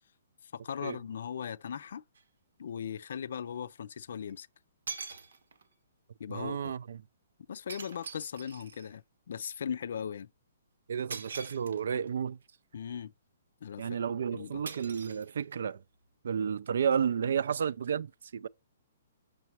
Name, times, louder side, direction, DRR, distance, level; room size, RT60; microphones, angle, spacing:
voice 1, 0.4-2.0 2.6-4.5 6.2-6.7 7.5-9.0 9.3-10.3 12.7-13.1 13.6-14.0 14.3-14.6, left 8 dB, 60° left, 0.4 m, -38 dB
sound 1, 2.1-2.2 4.3-4.4 4.9-5.7 7.7-8.9 11.1-12.1 14.7-15.7, right 5 dB, 90° right, 1.2 m, -44 dB
voice 2, 6.3-7.0 10.9-12.4 13.8-15.8 16.2-18.5, right 7 dB, 60° right, 0.4 m, -32 dB
7.0 x 6.5 x 2.9 m
hypercardioid pair, 175°, 0 cm